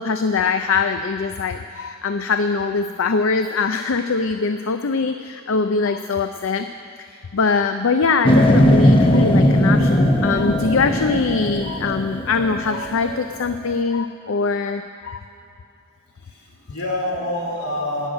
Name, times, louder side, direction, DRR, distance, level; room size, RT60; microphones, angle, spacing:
voice 1, 0.0-6.7 7.0-15.2, left 4 dB, 65° left, 8 dB, 0.5 m, -22 dB
sound 1, 8.2-13.2 13.7-13.8, equal, 25° left, 0.8 m, -18 dB
voice 2, 16.1-18.1, left 1 dB, 80° left, -1 dB, 3.2 m, -27 dB
17.5 x 6.4 x 9.2 m, 2.7 s
head